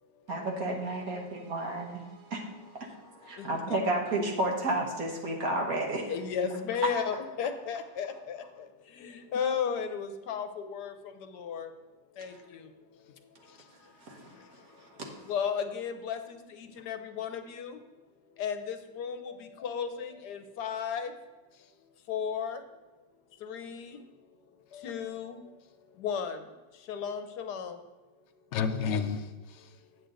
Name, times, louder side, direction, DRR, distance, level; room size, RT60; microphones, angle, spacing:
voice 1, 0.3-6.1 6.4-6.6 7.1-7.2 14.0-15.3, right 2 dB, 55° right, 0 dB, 1.6 m, -33 dB
voice 2, 3.3-3.8 6.1-11.7 12.2-13.0 14.4-14.5 14.7-14.8 15.3-18.0 18.4-21.2 22.1-22.6 23.4-24.0 24.7-27.8 28.3-28.4, left 7 dB, 70° left, 8 dB, 1.2 m, -35 dB
voice 3, 14.3-14.6 16.8-16.9 21.6-21.7 28.5-29.8, left 6 dB, 90° left, 6 dB, 0.6 m, -33 dB
8.0 x 7.9 x 3.9 m, 1.2 s
omnidirectional pair, 1.9 m